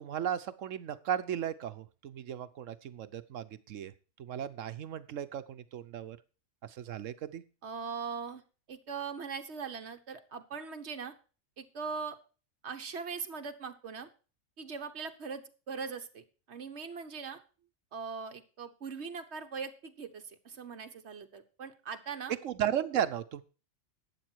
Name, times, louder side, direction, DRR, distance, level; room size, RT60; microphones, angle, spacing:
voice 1, 0.0-3.9 4.2-6.2 6.6-7.4 22.4-23.4, right 9 dB, 70° right, 13 dB, 1.0 m, -35 dB
voice 2, 7.6-8.4 8.7-11.1 11.6-12.2 12.6-14.1 14.6-17.4 17.9-22.3, right 5 dB, 55° right, 6 dB, 1.4 m, -40 dB
12.0 x 8.6 x 4.6 m, 0.35 s
omnidirectional pair, 1.4 m